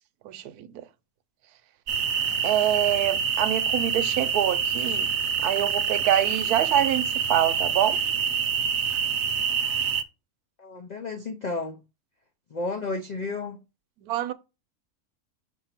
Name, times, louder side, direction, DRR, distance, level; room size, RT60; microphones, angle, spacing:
voice 1, 0.2-0.8 2.4-5.1 5.4-8.0 14.0-14.3, right 12 dB, 85° right, 1.1 m, -25 dB
sound 1, 1.9-10.0, right 6 dB, 60° right, 0.8 m, -26 dB
voice 2, 10.6-11.8 12.5-13.6, left 3 dB, 75° left, 0.4 m, -32 dB
6.7 x 2.7 x 5.7 m
omnidirectional pair, 1.6 m